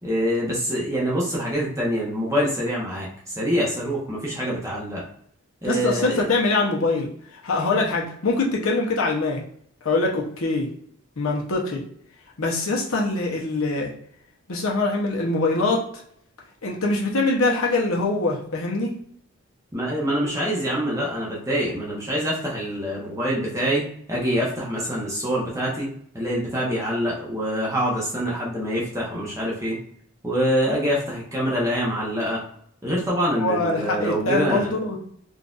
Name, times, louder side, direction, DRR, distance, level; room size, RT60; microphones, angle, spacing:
voice 1, 0.0-5.0 5.6-6.3 19.7-29.8 30.2-32.4 32.8-34.7, equal, 15° right, -4 dB, 0.8 m, -25 dB
voice 2, 5.6-7.1 7.4-9.4 9.8-10.7 11.2-11.8 12.4-13.9 14.5-15.9 16.6-19.0 33.3-35.0, left 3 dB, 80° left, -1 dB, 0.8 m, -23 dB
3.8 x 2.5 x 2.4 m, 0.66 s
head